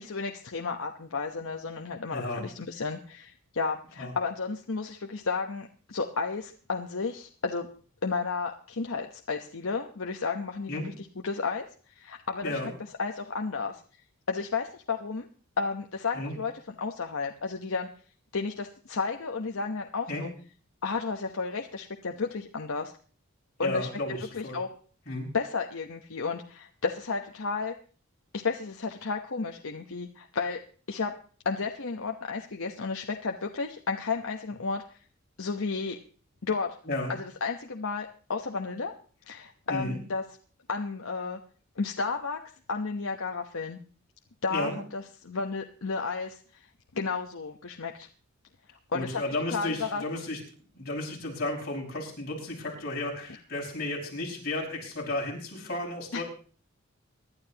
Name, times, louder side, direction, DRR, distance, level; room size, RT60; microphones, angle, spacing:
voice 1, 0.0-7.7 8.0-11.7 11.9-12.6 13.0-13.8 14.3-15.3 15.6-16.5 16.8-17.9 18.3-20.3 20.8-22.9 23.6-23.9 24.3-24.7 25.3-27.7 28.3-30.6 30.9-31.1 31.4-35.0 35.4-36.0 36.4-36.8 37.1-38.9 39.3-40.2 40.7-41.4 41.8-42.4 42.7-43.8 44.4-46.7 46.9-48.1 48.9-49.2 49.5-50.0 56.1-56.2, left 4 dB, 75° left, 2 dB, 1.0 m, -32 dB
voice 2, 2.1-2.4 4.0-4.1 10.7-10.9 12.4-12.7 16.1-16.3 20.1-20.3 23.6-24.6 25.1-25.3 36.9-37.1 39.7-40.0 44.5-44.8 48.9-50.4 50.7-56.2, left 2 dB, 45° left, -2 dB, 5.6 m, -33 dB
24.5 x 11.5 x 2.9 m, 0.41 s
head